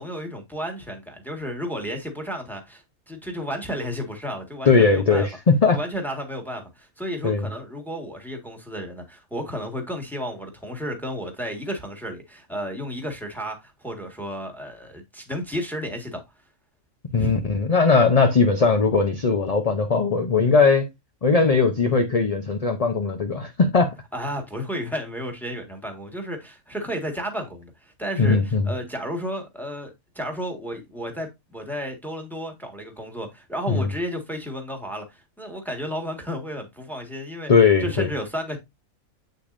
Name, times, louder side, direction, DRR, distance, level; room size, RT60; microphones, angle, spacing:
voice 1, 0.0-5.3 5.7-16.2 17.1-17.3 24.1-37.5 37.8-38.6, equal, ahead, 1.6 m, -32 dB
voice 2, 4.6-5.8 7.2-7.5 17.1-20.9 21.2-23.9 28.2-28.7 33.7-33.9 37.5-38.1, left 4 dB, 35° left, 0.7 m, -19 dB
8.1 x 6.6 x 2.6 m
omnidirectional pair, 1.5 m